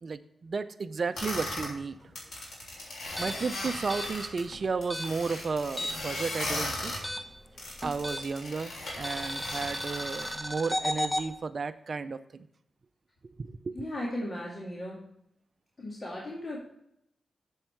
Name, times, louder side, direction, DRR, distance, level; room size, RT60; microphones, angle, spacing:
voice 1, 0.0-2.0 3.2-6.9 7.8-12.5 13.4-13.8, right 4 dB, 55° right, 9 dB, 0.4 m, -33 dB
sound 1, 1.2-1.7 2.1-4.4 4.8-7.0 7.6-10.4, left 1 dB, 85° left, 3.1 m, -37 dB
sound 2, 3.1-6.2 6.4-8.5 9.0-11.3, equal, ahead, 1.1 m, -34 dB
voice 2, 13.7-15.0 15.8-16.6, left 1 dB, 40° left, -5 dB, 2.2 m, -36 dB
7.8 x 7.2 x 4.4 m, 0.75 s
cardioid pair, 80°, 0 cm